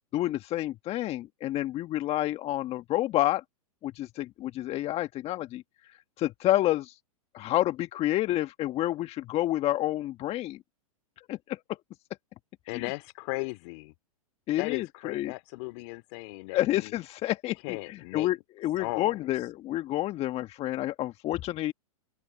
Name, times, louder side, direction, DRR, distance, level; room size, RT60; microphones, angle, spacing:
voice 1, 0.1-3.4 3.8-7.0 7.3-10.6 11.3-11.6 12.7-12.9 14.5-15.3 16.5-21.7, left 15 dB, 30° left, 1.3 m, -29 dB
voice 2, 12.7-13.9 14.6-16.9 17.6-18.3 18.8-19.3, left 28 dB, 50° left, 2.7 m, -36 dB
hypercardioid pair, 110°, 19 cm